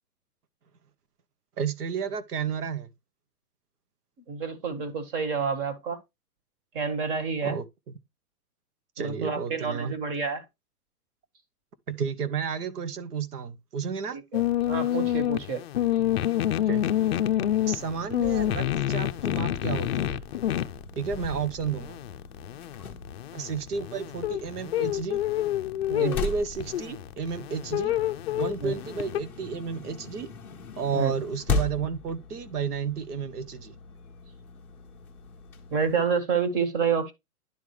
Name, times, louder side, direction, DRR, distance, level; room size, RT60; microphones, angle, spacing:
voice 1, 1.6-2.9 7.4-7.6 9.0-10.0 11.9-14.2 16.7-16.8 17.7-20.2 21.0-22.0 23.3-25.2 26.0-28.0 28.4-30.3 30.8-33.7, right 6 dB, 80° right, 1.2 m, -32 dB
voice 2, 4.3-6.0 6.7-7.6 9.0-10.4 14.1-14.4 14.7-15.6 25.9-26.2 28.6-28.7 30.9-31.2 35.7-37.1, right 5 dB, 35° right, 1.7 m, -28 dB
sound 1, 14.3-29.2, left 12 dB, 45° left, 0.5 m, -28 dB
sound 2, 17.3-36.0, left 4 dB, 5° left, 0.7 m, -39 dB
11.5 x 3.8 x 3.2 m
hypercardioid pair, 160°, 45 cm